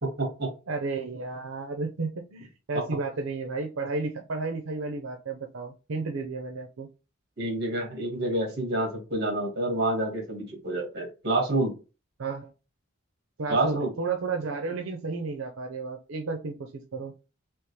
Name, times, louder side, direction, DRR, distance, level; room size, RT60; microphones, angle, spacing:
voice 1, 0.0-0.5 2.7-2.8 7.4-11.7 13.5-13.9, right 2 dB, 55° right, 2 dB, 1.7 m, -28 dB
voice 2, 0.7-6.9 12.2-12.5 13.4-17.1, right 3 dB, 85° right, 4 dB, 0.6 m, -32 dB
3.6 x 2.9 x 3.0 m, 0.32 s
head